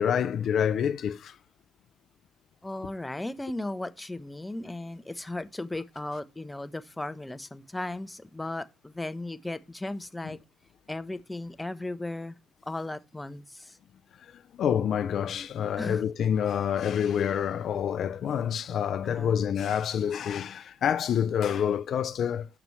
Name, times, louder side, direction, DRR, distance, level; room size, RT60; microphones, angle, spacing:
voice 1, 0.0-1.4 14.3-22.5, left 8 dB, 65° left, 0.4 m, -27 dB
voice 2, 2.6-10.4 10.9-12.4 12.6-13.8 15.8-16.0 19.0-19.4, left 2 dB, 15° left, 0.7 m, -36 dB
6.8 x 5.9 x 3.1 m
hypercardioid pair, 50°, 0 cm